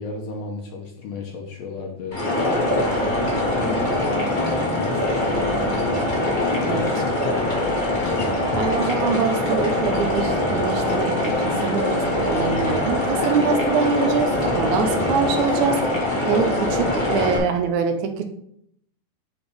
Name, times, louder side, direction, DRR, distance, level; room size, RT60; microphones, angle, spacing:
voice 1, 0.0-2.2 2.8-6.0 6.6-7.5, left 3 dB, 65° left, 1 dB, 2.0 m, -34 dB
sound 1, 2.1-17.4, left 1 dB, 35° left, 0.7 m, -23 dB
voice 2, 8.5-15.8 16.3-18.2, right 6 dB, 75° right, 6 dB, 2.1 m, -24 dB
8.0 x 3.4 x 5.1 m, 0.71 s
omnidirectional pair, 3.5 m